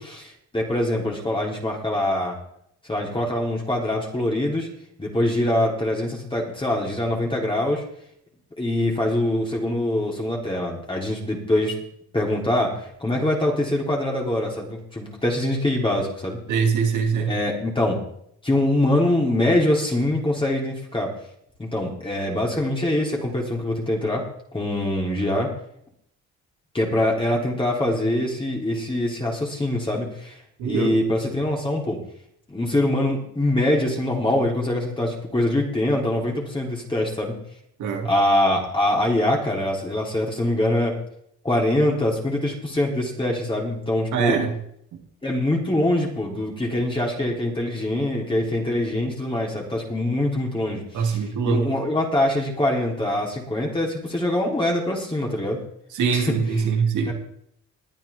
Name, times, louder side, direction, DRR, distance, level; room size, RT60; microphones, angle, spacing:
voice 1, 0.2-2.4 2.9-4.7 5.0-7.8 8.6-11.7 12.1-16.4 17.2-18.0 18.4-21.1 21.6-24.3 24.5-25.5 26.7-30.4 30.6-32.0 32.5-37.3 38.0-41.0 41.4-44.4 45.2-51.2 51.4-55.6 56.1-56.3 57.1-57.2, left 1 dB, 15° left, -2 dB, 3.6 m, -23 dB
voice 2, 16.5-17.3 30.6-31.0 37.8-38.1 44.1-44.5 50.9-51.7 55.9-57.1, right 6 dB, 80° right, 3 dB, 2.8 m, -23 dB
21.0 x 9.0 x 3.6 m, 0.69 s
cardioid pair, 90°, 30 cm